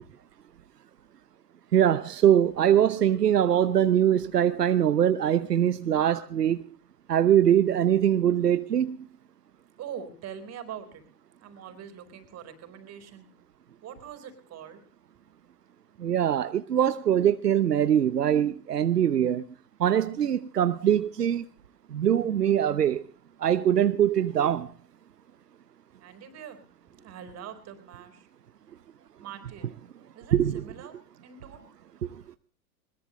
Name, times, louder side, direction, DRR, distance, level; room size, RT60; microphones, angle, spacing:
voice 1, 1.7-6.6 7.1-9.0 16.0-19.4 19.8-21.4 21.9-23.0 23.4-24.7 30.3-30.6 32.0-32.1, right 10 dB, 85° right, 1.0 m, -22 dB
voice 2, 9.8-11.0 11.4-13.2 13.8-14.8 26.0-26.6 26.9-28.3 29.2-29.7 30.1-31.0 31.2-31.6, right 8 dB, 35° right, 4.6 m, -43 dB
21.5 x 21.5 x 3.1 m
hypercardioid pair, 100°, 46 cm